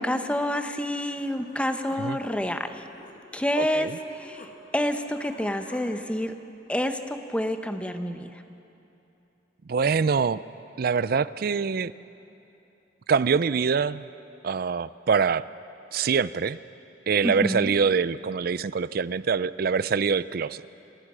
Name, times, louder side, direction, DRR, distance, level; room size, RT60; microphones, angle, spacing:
voice 1, 0.0-2.8 3.3-4.5 4.7-6.3 6.7-8.4 17.2-17.7, left 1 dB, 5° left, 7 dB, 0.9 m, -28 dB
Human voice, 0.8-0.9 1.2-4.5 4.8-5.8, left 2 dB, 50° left, 2.1 m, -50 dB
voice 2, 3.6-4.0 9.7-10.4 10.8-11.9 13.1-14.1 14.4-15.4 15.9-16.6 17.1-20.7, right 5 dB, 55° right, 17 dB, 0.4 m, -24 dB
29.0 x 16.5 x 6.2 m, 2.9 s
head